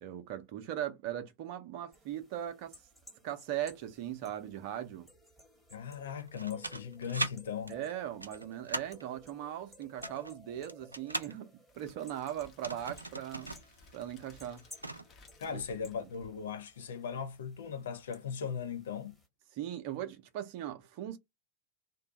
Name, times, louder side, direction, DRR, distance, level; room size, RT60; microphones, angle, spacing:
voice 1, 0.0-2.7 3.2-5.1 7.7-11.5 11.7-13.5 13.9-14.6 15.5-15.6 19.5-21.2, right 11 dB, 45° right, 0.6 m, -39 dB
sound 1, 1.9-19.3, left 1 dB, ahead, 1.2 m, -59 dB
voice 2, 5.7-7.8 15.4-19.2, left 7 dB, 65° left, 0.6 m, -38 dB
sound 2, 6.2-7.3 7.7-9.0 9.8-11.3 12.4-13.7 13.9-14.0 14.4-15.1, right 2 dB, 85° right, 0.3 m, -39 dB
Crackle, 11.7-16.7, left 4 dB, 30° left, 0.9 m, -59 dB
2.6 x 2.2 x 3.7 m
figure-of-eight pair, 90°, 0 cm